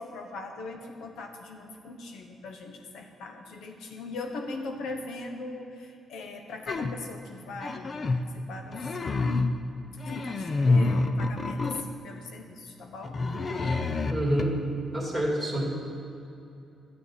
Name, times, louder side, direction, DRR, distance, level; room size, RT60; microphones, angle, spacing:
voice 1, 0.0-9.5 10.0-13.2, left 3 dB, 85° left, 4 dB, 1.1 m, -40 dB
sound 1, 6.7-7.0 7.6-8.3 8.7-9.6 10.0-11.9 13.0-14.4, left 3 dB, 35° left, 0.5 m, -27 dB
voice 2, 14.1-14.5 14.9-15.6, right 1 dB, 10° left, -4 dB, 2.5 m, -27 dB
13.0 x 8.4 x 4.1 m, 2.8 s
cardioid pair, 125°, 0 cm